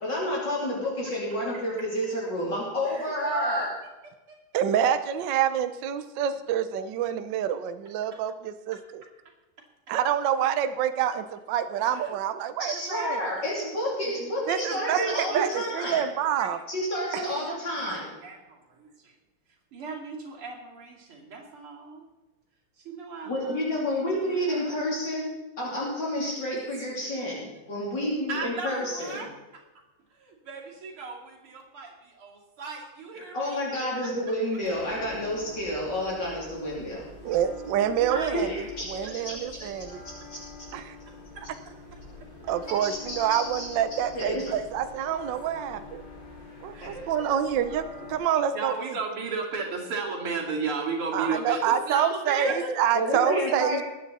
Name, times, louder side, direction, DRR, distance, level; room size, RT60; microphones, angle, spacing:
voice 1, 0.0-3.7 12.6-16.0 16.7-18.2 23.3-29.2 33.3-37.1 38.3-38.9 39.3-39.7 40.3-40.4 42.3-42.4 42.8-44.5 46.8-46.9 52.4-52.5 52.9-53.8, left 1 dB, 55° left, -5 dB, 3.8 m, -30 dB
voice 2, 2.8-3.7 4.3-4.4 8.1-8.2 8.7-8.8 11.9-12.2 12.7-13.2 14.7-16.1 16.4-16.6 17.4-19.2 19.7-22.0 22.8-24.8 26.5-26.9 28.3-29.6 30.1-33.6 34.0-34.1 34.8-34.9 38.0-38.5 39.0-39.7 41.1-42.0 46.7-47.3 48.5-53.4, right 4 dB, 85° right, -1 dB, 3.4 m, -36 dB
voice 3, 4.5-9.0 9.9-13.2 14.5-15.5 15.8-16.6 17.1-17.2 37.2-38.5 38.9-40.0 40.7-40.9 42.5-46.0 46.6-48.7 51.1-53.8, right 9 dB, 65° right, 10 dB, 1.3 m, -27 dB
sound 1, 34.6-48.2, left 3 dB, 20° left, 4.8 m, -45 dB
21.0 x 9.2 x 4.1 m, 1.1 s
omnidirectional pair, 2.3 m